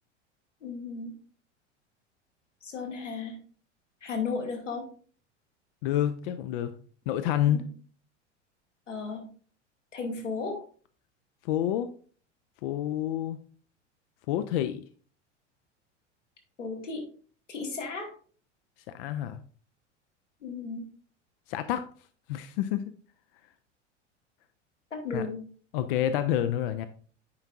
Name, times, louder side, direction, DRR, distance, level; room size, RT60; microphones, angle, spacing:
voice 1, 0.6-1.1 2.6-3.4 4.0-4.8 7.4-7.7 8.9-9.2 9.9-10.6 16.6-17.0 17.5-18.1 20.4-20.9 24.9-25.4, left 4 dB, 80° left, 1 dB, 1.7 m, -34 dB
voice 2, 5.8-6.8 7.1-7.6 11.4-11.9 12.6-13.4 14.3-14.9 18.9-19.4 21.5-21.9 22.3-22.9 25.1-25.2 25.7-26.9, left 11 dB, 50° left, 11 dB, 0.5 m, -28 dB
9.6 x 4.5 x 2.5 m, 0.43 s
figure-of-eight pair, 80°, 36 cm